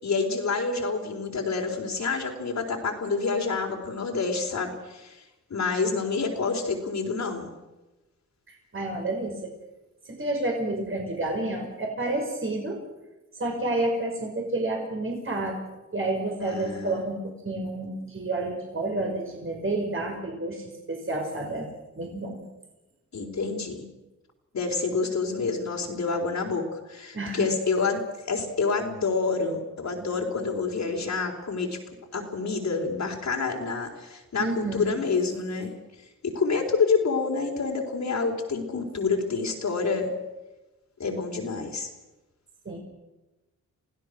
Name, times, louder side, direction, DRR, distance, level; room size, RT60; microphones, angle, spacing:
voice 1, 0.0-5.2 5.5-7.5 16.4-17.0 23.1-23.8 24.5-31.7 32.1-35.7 36.2-40.1 41.0-41.9, left 4 dB, 65° left, 1 dB, 3.9 m, -28 dB
voice 2, 8.5-9.5 10.2-12.8 13.4-15.7 15.9-21.7 22.0-22.4 27.1-27.5 34.4-35.0 42.7-42.8, right 2 dB, 40° right, 1 dB, 5.2 m, -30 dB
28.0 x 16.0 x 6.4 m, 1.0 s
cardioid pair, 70°, 30 cm